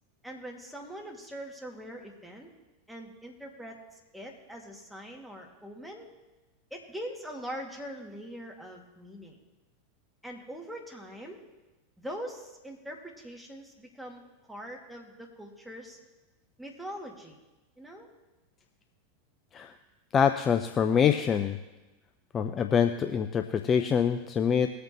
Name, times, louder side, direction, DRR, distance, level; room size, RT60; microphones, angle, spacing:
voice 1, 0.2-2.5 2.9-6.1 6.7-9.4 10.2-11.4 12.0-14.2 14.5-16.0 16.6-17.4 17.8-18.1, equal, ahead, 0 dB, 2.3 m, -42 dB
voice 2, 20.1-21.6 22.3-24.7, left 7 dB, 30° left, 8 dB, 0.6 m, -25 dB
20.5 x 8.2 x 3.1 m, 1.1 s
hypercardioid pair, 90°, 0 cm